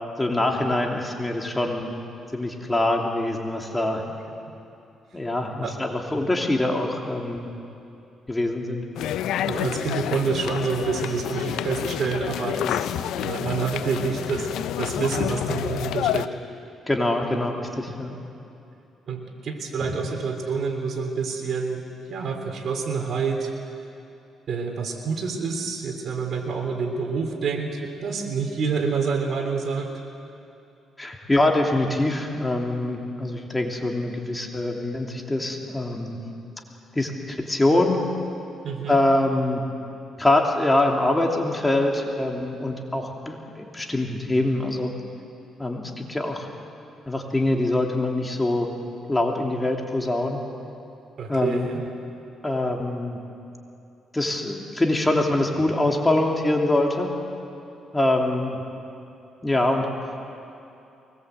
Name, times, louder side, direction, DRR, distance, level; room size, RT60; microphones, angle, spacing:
voice 1, 0.2-1.9 2.3-4.0 5.1-7.5 8.3-8.8 12.6-12.8 16.9-18.1 31.0-36.2 36.9-38.0 38.9-39.6 40.2-44.9 45.6-46.5 47.1-48.7 49.1-50.4 51.3-51.7 52.4-53.2 54.1-57.1 57.9-58.6 59.4-59.9, left 1 dB, 15° left, 1 dB, 2.8 m, -24 dB
sound 1, 9.0-16.3, left 11 dB, 85° left, 0.6 m, -29 dB
voice 2, 9.4-14.5 14.8-16.3 19.1-21.8 22.1-23.5 24.5-29.9 38.6-39.0 51.2-51.9, right 5 dB, 60° right, 4 dB, 3.4 m, -27 dB
23.5 x 20.5 x 8.1 m, 2.7 s
cardioid pair, 90°, 0 cm